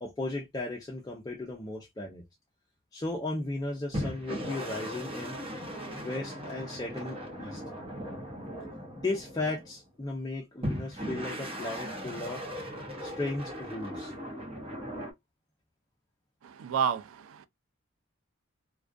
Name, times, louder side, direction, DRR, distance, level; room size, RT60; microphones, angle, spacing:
voice 1, 0.0-2.2 2.9-5.4 6.0-7.6 9.0-12.4 13.0-14.1, left 2 dB, 20° left, 0.5 m, -35 dB
sound 1, 3.9-9.8 10.6-15.1, equal, 25° right, 0.9 m, -38 dB
voice 2, 16.4-17.5, right 7 dB, 70° right, 0.4 m, -30 dB
2.4 x 2.2 x 2.4 m
head